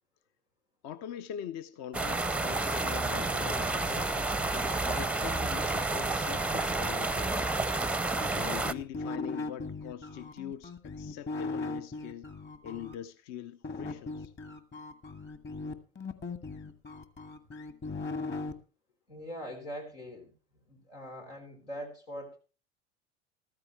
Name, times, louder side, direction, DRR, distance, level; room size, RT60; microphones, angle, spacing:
voice 1, 0.8-7.5 8.3-12.3 12.6-14.3, left 10 dB, 50° left, 0.6 m, -43 dB
sound 1, 1.9-8.7, right 2 dB, 5° right, 0.5 m, -30 dB
sound 2, 8.2-12.9 13.6-18.5, left 3 dB, 30° left, 1.6 m, -38 dB
voice 2, 19.1-20.3 20.7-22.4, equal, 90° left, 4.1 m, -42 dB
14.5 x 13.5 x 3.2 m
hypercardioid pair, 75°, 35 cm